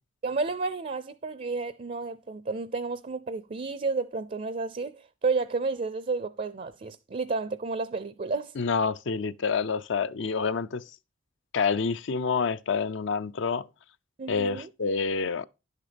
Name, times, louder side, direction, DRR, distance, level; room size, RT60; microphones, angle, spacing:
voice 1, 0.2-8.5 14.2-14.7, right 4 dB, 40° right, 0.5 m, -31 dB
voice 2, 8.6-10.9 11.5-13.7 14.3-15.4, left 5 dB, 65° left, 0.5 m, -28 dB
11.0 x 6.5 x 5.1 m
head